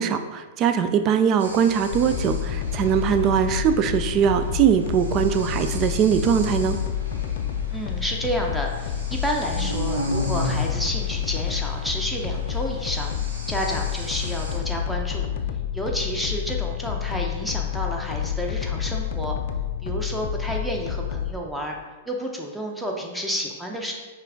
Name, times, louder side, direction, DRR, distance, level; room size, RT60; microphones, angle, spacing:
voice 1, 0.0-6.8, right 8 dB, 35° right, 9 dB, 0.3 m, -21 dB
sound 1, 1.4-14.6, equal, 90° right, 1.0 m, -35 dB
sound 2, 1.9-21.3, left 9 dB, 60° left, 0.4 m, -29 dB
voice 2, 7.7-13.1 13.5-15.3 15.7-19.4 19.8-21.7 22.1-23.9, equal, ahead, -1 dB, 0.7 m, -30 dB
5.5 x 2.5 x 3.5 m, 1.3 s
hypercardioid pair, 110°, 0 cm